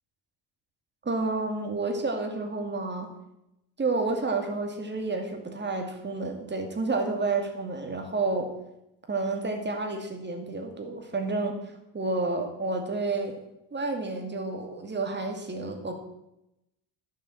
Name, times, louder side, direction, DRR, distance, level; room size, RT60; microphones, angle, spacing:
voice 1, 1.0-3.1 3.8-8.5 9.1-11.6 11.9-13.3 13.7-15.9, right 3 dB, 20° right, 3 dB, 2.4 m, -30 dB
11.5 x 7.1 x 7.3 m, 0.86 s
cardioid pair, 125°, 48 cm